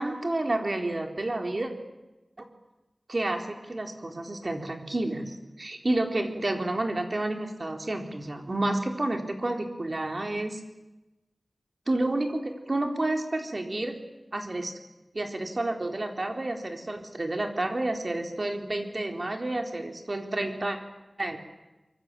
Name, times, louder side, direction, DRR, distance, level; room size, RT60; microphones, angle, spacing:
voice 1, 0.0-1.7 3.1-10.6 11.9-14.0 14.3-14.7 15.1-20.8 21.2-21.4, right 2 dB, 45° right, 4 dB, 4.0 m, -30 dB
24.5 x 24.0 x 9.1 m, 1.0 s
wide cardioid pair, 75°, 0 cm